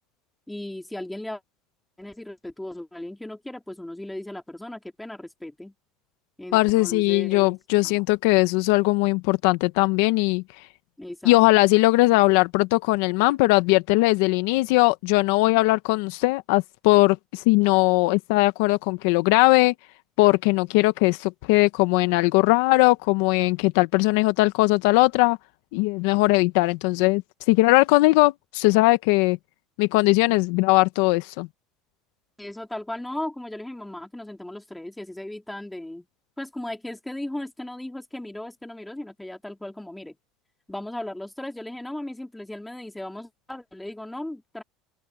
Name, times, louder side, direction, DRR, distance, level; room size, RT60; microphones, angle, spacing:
voice 1, 0.5-1.4 2.0-5.7 6.4-7.5 7.8-8.0 11.0-11.3 32.4-36.1 36.4-40.1 40.7-44.6, left 1 dB, 5° left, 3.1 m, -36 dB
voice 2, 6.5-10.4 11.2-19.7 20.2-25.4 25.7-27.2 27.5-29.4 29.8-31.5, left 21 dB, 75° left, 0.9 m, -20 dB
open air
supercardioid pair, 120°, 0 cm